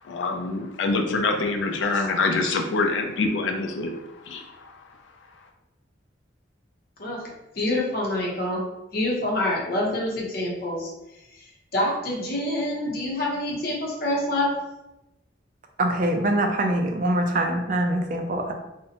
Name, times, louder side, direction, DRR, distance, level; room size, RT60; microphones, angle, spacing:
voice 1, 0.0-4.7, left 3 dB, 75° left, 4 dB, 0.3 m, -25 dB
voice 2, 7.5-8.6 8.9-10.9 11.3-11.4 11.7-14.5, left 1 dB, 50° left, -3 dB, 0.7 m, -26 dB
voice 3, 15.8-18.5, right 1 dB, 45° right, 4 dB, 0.3 m, -24 dB
2.6 x 2.1 x 2.7 m, 0.94 s
head